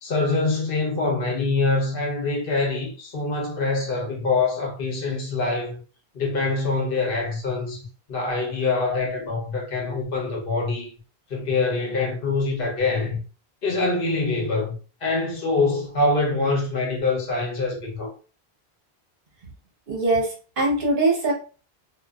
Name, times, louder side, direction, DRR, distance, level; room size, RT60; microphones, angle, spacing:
voice 1, 0.0-5.8 6.1-10.9 11.3-13.2 13.6-14.8 15.0-18.1, left 3 dB, 60° left, 0.9 m, -24 dB
voice 2, 19.9-21.3, right 2 dB, 60° right, 1.0 m, -22 dB
2.5 x 2.5 x 2.3 m
omnidirectional pair, 1.1 m